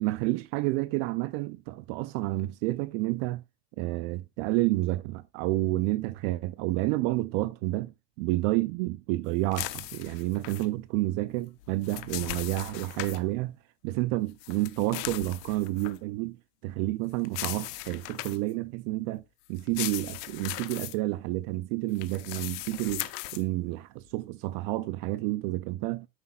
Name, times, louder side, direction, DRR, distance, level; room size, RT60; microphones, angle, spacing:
voice 1, 0.0-3.4 3.8-7.9 8.2-13.6 13.8-16.4 16.6-19.2 19.5-26.1, right 18 dB, 50° right, 0.5 m, -30 dB
sound 1, 9.5-10.7 11.6-13.2 14.4-16.0 17.2-18.5 19.6-20.9 21.9-23.4, left 17 dB, 75° left, 1.1 m, -38 dB
9.8 x 9.6 x 2.3 m
supercardioid pair, 155°, 48 cm